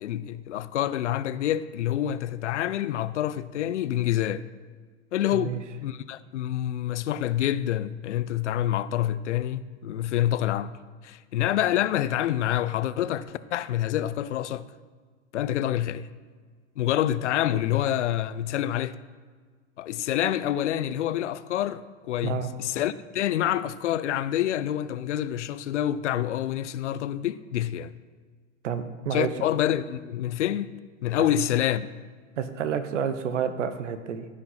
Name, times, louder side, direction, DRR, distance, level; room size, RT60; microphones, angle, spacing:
voice 1, 0.0-4.4 5.1-5.5 5.8-10.8 11.0-14.7 15.3-16.1 16.8-19.0 19.8-27.9 29.1-30.7 31.0-31.9, left 12 dB, 65° left, 0.6 m, -27 dB
voice 2, 28.6-29.5 31.2-31.3 32.4-34.3, right 8 dB, 70° right, 1.1 m, -29 dB
15.0 x 5.2 x 5.7 m
figure-of-eight pair, 100°, 38 cm